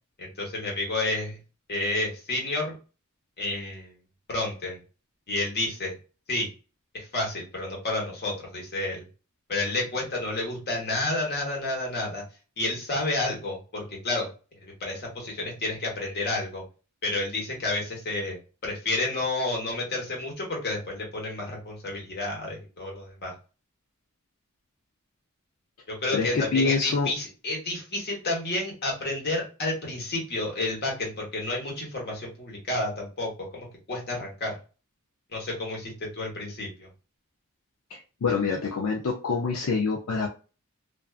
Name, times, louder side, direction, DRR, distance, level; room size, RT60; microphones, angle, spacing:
voice 1, 0.2-1.4 1.7-2.7 3.4-3.9 4.3-4.8 5.3-5.9 6.3-6.5 6.9-9.1 9.5-12.2 12.6-14.3 14.6-16.6 17.0-18.4 18.6-23.3 25.9-34.6 35.3-36.9, left 2 dB, 50° left, -2 dB, 1.1 m, -30 dB
voice 2, 26.1-27.1 37.9-40.3, left 4 dB, 80° left, 0 dB, 0.5 m, -26 dB
2.5 x 2.3 x 2.4 m, 0.34 s
head